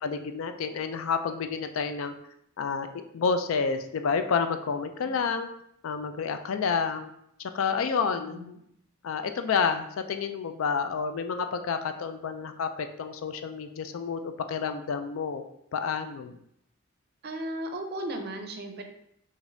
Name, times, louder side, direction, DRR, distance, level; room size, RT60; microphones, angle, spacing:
voice 1, 0.0-2.1 2.6-5.5 5.8-7.1 7.4-8.6 9.0-15.4 15.7-16.4, left 5 dB, 80° left, 8 dB, 0.4 m, -29 dB
voice 2, 8.2-8.7 17.2-18.8, right 1 dB, 50° right, 4 dB, 0.5 m, -36 dB
4.9 x 2.6 x 2.6 m, 0.74 s
head